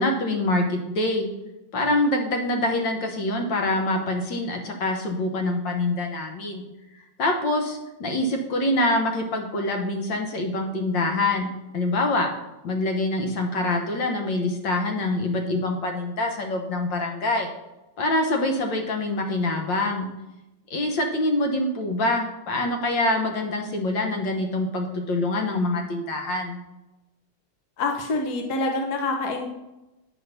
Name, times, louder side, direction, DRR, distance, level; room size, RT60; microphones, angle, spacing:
voice 1, 0.0-1.3 1.7-6.7 7.2-12.3 12.6-17.5 18.0-20.1 20.7-26.6, left 2 dB, 75° left, 3 dB, 1.9 m, -25 dB
voice 2, 27.8-29.5, left 2 dB, 55° left, 2 dB, 1.6 m, -26 dB
8.8 x 5.8 x 6.6 m, 1.0 s
omnidirectional pair, 2.0 m